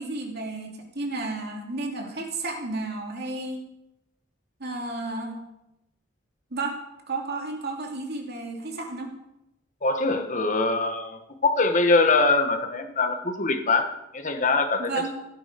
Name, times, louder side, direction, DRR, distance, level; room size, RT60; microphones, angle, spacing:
voice 1, 0.0-3.6 4.6-5.4 6.5-6.8 7.1-9.1 14.8-15.1, right 2 dB, 55° right, 1 dB, 2.8 m, -32 dB
voice 2, 9.8-15.1, left 3 dB, 40° left, 6 dB, 1.6 m, -23 dB
15.5 x 10.0 x 5.3 m, 0.88 s
head